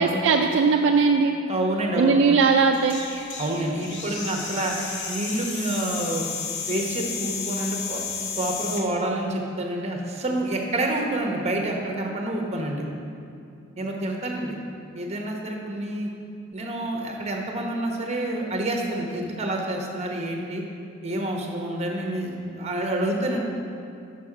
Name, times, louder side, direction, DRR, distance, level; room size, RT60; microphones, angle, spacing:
voice 1, 0.0-1.4 2.0-3.0, right 5 dB, 65° right, 3 dB, 0.3 m, -19 dB
voice 2, 1.5-2.2 3.4-6.2 6.7-8.0 8.3-12.8 13.8-14.6 14.9-16.1 16.5-20.6 21.0-23.4, right 1 dB, 35° right, 1 dB, 0.9 m, -28 dB
sound 1, 2.7-8.8, left 5 dB, 60° left, 0.8 m, -33 dB
6.0 x 5.9 x 4.8 m, 2.6 s
head